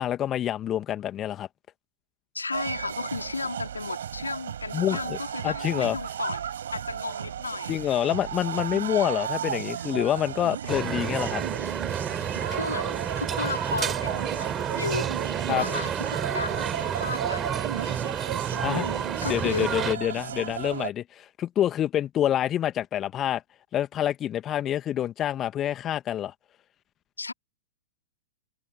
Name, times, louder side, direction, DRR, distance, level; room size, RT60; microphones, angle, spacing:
voice 1, 0.0-1.5 4.7-5.2 5.4-6.0 7.7-11.4 15.5-15.6 18.5-18.9 19.2-23.4 23.7-26.3, left 11 dB, 25° left, 2.1 m, -27 dB
voice 2, 2.3-7.8 12.5-15.1 15.5-18.0 18.7-19.7 27.2-27.3, left 3 dB, 80° left, 2.4 m, -34 dB
sound 1, 2.5-20.9, right 9 dB, 60° right, 5.6 m, -35 dB
sound 2, 10.7-20.0, right 8 dB, 20° right, 3.7 m, -30 dB
figure-of-eight pair, 100°, 0 cm